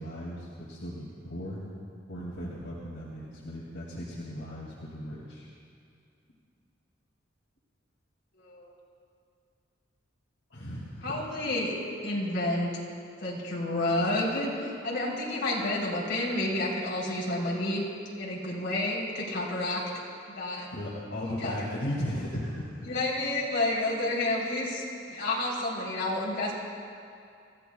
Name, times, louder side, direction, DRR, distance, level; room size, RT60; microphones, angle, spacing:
voice 1, 0.0-1.6 2.1-5.5 10.5-11.3 20.7-22.7, equal, 75° left, -6 dB, 2.3 m, -36 dB
voice 2, 11.0-11.7 12.0-12.7 13.2-17.8 18.2-19.8 20.3-20.7 21.4-21.5 22.9-24.8 25.1-26.5, left 1 dB, 60° left, -5 dB, 3.6 m, -30 dB
28.5 x 15.0 x 2.3 m, 2.4 s
head